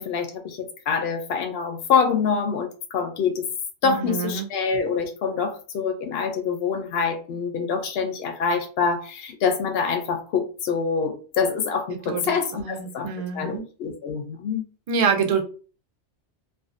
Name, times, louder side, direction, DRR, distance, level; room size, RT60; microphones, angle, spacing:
voice 1, 0.0-3.5 3.8-13.1 13.3-14.6, left 6 dB, 70° left, 5 dB, 0.8 m, -25 dB
voice 2, 3.8-4.5 11.9-13.6 14.9-15.4, right 6 dB, 55° right, 4 dB, 0.4 m, -26 dB
2.5 x 2.3 x 2.4 m, 0.38 s
omnidirectional pair, 1.1 m